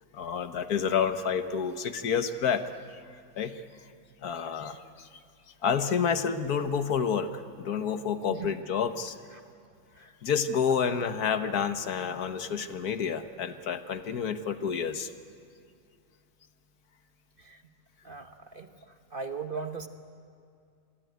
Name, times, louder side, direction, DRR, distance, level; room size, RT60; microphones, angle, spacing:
voice 1, 0.1-2.6 3.4-3.6 4.2-5.1 5.6-9.2 10.2-15.1, left 7 dB, 70° left, 9 dB, 1.5 m, -29 dB
voice 2, 18.0-19.9, right 5 dB, 35° right, 6 dB, 1.1 m, -39 dB
26.5 x 23.0 x 9.4 m, 2.4 s
omnidirectional pair, 1.7 m